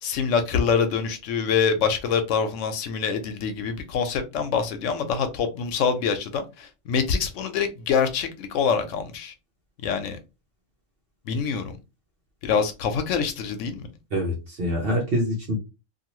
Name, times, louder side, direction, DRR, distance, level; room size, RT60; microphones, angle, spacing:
voice 1, 0.0-9.3 9.8-10.2 11.3-11.8 12.4-13.9, left 6 dB, 85° left, 0.9 m, -25 dB
voice 2, 14.1-15.6, equal, 55° right, 0.9 m, -25 dB
2.7 x 2.3 x 2.9 m
omnidirectional pair, 1.3 m